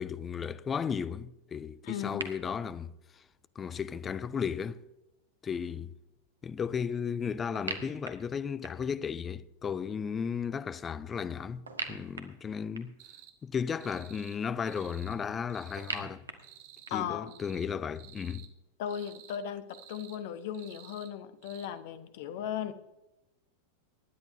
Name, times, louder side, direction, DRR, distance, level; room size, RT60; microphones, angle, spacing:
voice 1, 0.0-3.2 3.6-4.8 5.4-5.9 6.4-13.0 13.4-16.2 16.9-18.5, left 7 dB, 20° left, 0.5 m, -35 dB
voice 2, 1.8-2.2 16.9-17.3 18.8-22.7, left 9 dB, 50° left, 1.1 m, -37 dB
sound 1, 2.2-2.3 7.6-9.0 11.7-13.1 15.8-17.2, right 4 dB, 70° right, 1.3 m, -40 dB
sound 2, 13.0-13.3 13.8-14.4 14.6-15.2 15.5-16.0 16.4-17.0 17.3-17.7 17.9-18.5 18.9-19.4 19.7-20.2 20.5-21.1 21.4-21.7, right 11 dB, 50° right, 1.4 m, -53 dB
25.0 x 10.5 x 2.7 m
figure-of-eight pair, 90°, 0 cm